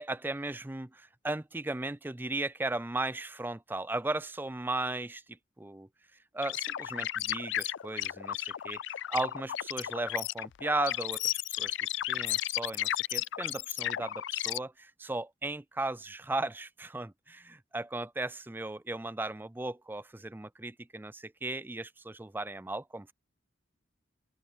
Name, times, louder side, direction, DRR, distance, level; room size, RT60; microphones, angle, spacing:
voice 1, 0.0-5.9 6.3-11.8 12.1-23.1, right 2 dB, 10° right, 0.4 m, -36 dB
sound 1, 6.4-14.6, left 13 dB, 65° left, 0.4 m, -34 dB
open air
head